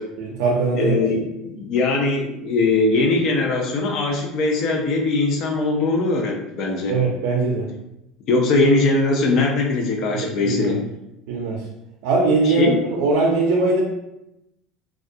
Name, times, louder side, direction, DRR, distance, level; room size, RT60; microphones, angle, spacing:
voice 1, 0.2-1.0 6.9-7.7 10.1-10.8 11.3-11.7 12.0-13.8, right 3 dB, 75° right, -2 dB, 0.4 m, -21 dB
voice 2, 0.7-7.0 8.3-10.8 12.4-12.8, left 3 dB, 50° left, 2 dB, 0.5 m, -21 dB
2.3 x 2.1 x 2.6 m, 0.86 s
cardioid pair, 135°, 0 cm